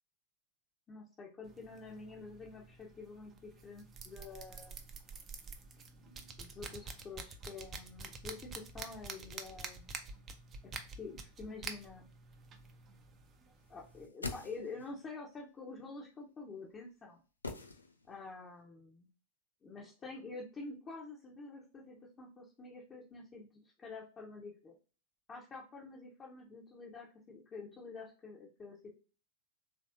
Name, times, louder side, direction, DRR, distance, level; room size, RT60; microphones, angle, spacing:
voice 1, 0.9-4.7 5.9-9.9 11.0-12.0 13.4-17.2 18.1-19.1 19.6-23.5 23.8-24.7 25.3-28.8, left 3 dB, 20° left, -3 dB, 0.6 m, -48 dB
sound 1, 1.4-14.1, right 4 dB, 25° right, 0.4 m, -48 dB
sound 2, 13.8-15.0 17.4-18.3 18.6-18.7, left 3 dB, 80° left, 0.4 m, -44 dB
3.3 x 2.5 x 2.5 m, 0.36 s
figure-of-eight pair, 90°, 0 cm